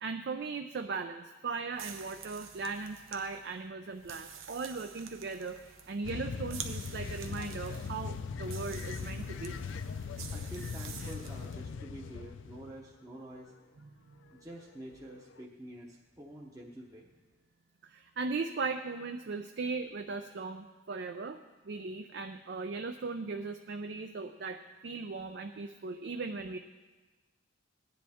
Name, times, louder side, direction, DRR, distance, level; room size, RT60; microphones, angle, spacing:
voice 1, 0.0-9.6 17.8-26.6, right 4 dB, 55° right, 7 dB, 0.4 m, -38 dB
sound 1, 1.7-11.6, right 7 dB, 85° right, 0.9 m, -48 dB
sound 2, 6.0-12.9 15.4-15.5, left 5 dB, 70° left, 0.4 m, -39 dB
voice 2, 10.3-13.5 14.3-17.1, right 1 dB, 15° right, -2 dB, 0.8 m, -48 dB
16.5 x 10.0 x 3.5 m, 1.3 s
head